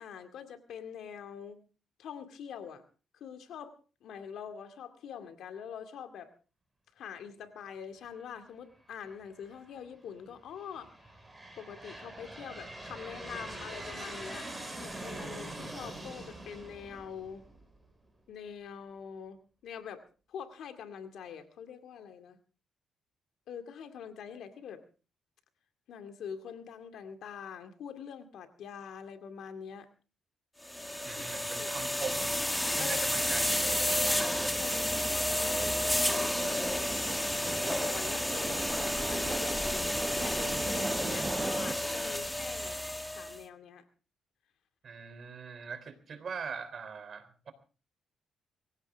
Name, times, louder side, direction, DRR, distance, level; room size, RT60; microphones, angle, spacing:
voice 1, 0.0-1.6 2.0-2.8 3.2-3.7 4.0-6.3 7.0-11.1 11.6-14.5 14.8-17.4 18.3-20.0 20.3-22.4 23.5-24.8 25.9-29.9 31.2-31.3 31.6-31.7 32.8-33.1 34.0-37.3 37.7-39.9 40.2-42.8 43.1-43.8, left 7 dB, 75° left, 8 dB, 2.2 m, -45 dB
Aircraft, 9.0-9.6 10.3-17.8, right 1 dB, 10° right, 6.6 m, -44 dB
sound 1, 30.6-43.4, left 1 dB, 5° left, 1.6 m, -31 dB
voice 2, 31.0-32.5 32.7-34.4 44.8-47.5, right 6 dB, 50° right, 12 dB, 3.5 m, -42 dB
sound 2, 33.1-41.7, right 4 dB, 30° right, 0.7 m, -39 dB
23.5 x 15.5 x 3.5 m, 0.36 s
cardioid pair, 105°, 0 cm